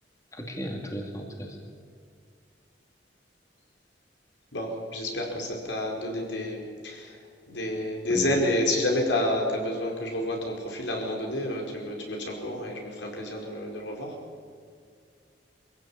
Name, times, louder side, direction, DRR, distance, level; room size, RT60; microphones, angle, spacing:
voice 1, 0.3-1.6 8.1-8.3, equal, 20° left, 2 dB, 2.4 m, -35 dB
voice 2, 4.5-7.2 7.5-14.1, left 1 dB, 85° left, 0 dB, 5.1 m, -29 dB
24.5 x 16.0 x 8.8 m, 2.2 s
head